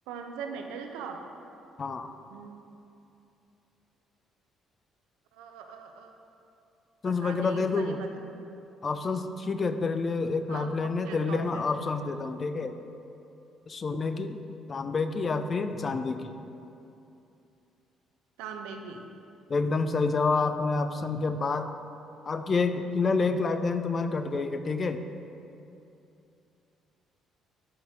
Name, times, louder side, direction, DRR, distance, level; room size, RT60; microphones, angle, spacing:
voice 1, 0.1-1.2 2.3-2.6 5.3-6.1 7.0-8.1 10.5-11.6 18.4-19.1, right 6 dB, 65° right, 4 dB, 0.5 m, -41 dB
voice 2, 1.8-2.1 7.0-8.0 8.8-12.7 13.7-14.4 14.7-16.3 19.5-21.7 22.3-25.0, left 4 dB, 35° left, 9 dB, 0.4 m, -28 dB
11.0 x 4.1 x 4.6 m, 2.7 s
figure-of-eight pair, 45°, 0 cm